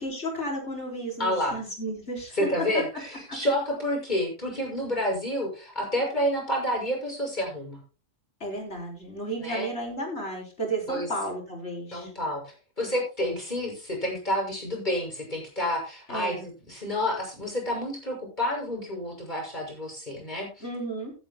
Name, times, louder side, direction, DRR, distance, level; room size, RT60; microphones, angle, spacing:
voice 1, 0.0-2.6 8.4-12.1 16.1-16.5 20.6-21.1, right 1 dB, 55° left, 1 dB, 4.3 m, -33 dB
voice 2, 1.2-1.6 2.3-7.8 9.4-9.7 10.9-11.1 11.9-20.7, equal, 35° left, 0 dB, 6.4 m, -29 dB
17.0 x 11.0 x 2.2 m, 0.33 s
omnidirectional pair, 1.4 m